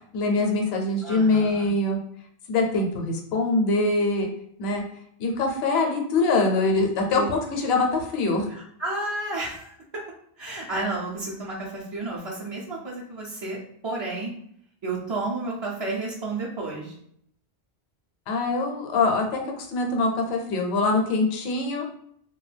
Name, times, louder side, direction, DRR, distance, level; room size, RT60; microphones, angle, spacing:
voice 1, 0.1-2.0 2.5-4.3 4.6-4.8 5.2-8.5 18.3-21.8, left 3 dB, 75° left, 2 dB, 0.8 m, -23 dB
voice 2, 1.0-1.7 7.1-7.3 8.8-9.8 10.4-14.3 14.8-16.9, right 2 dB, 50° right, -6 dB, 0.3 m, -31 dB
2.2 x 2.2 x 3.2 m, 0.68 s
omnidirectional pair, 1.1 m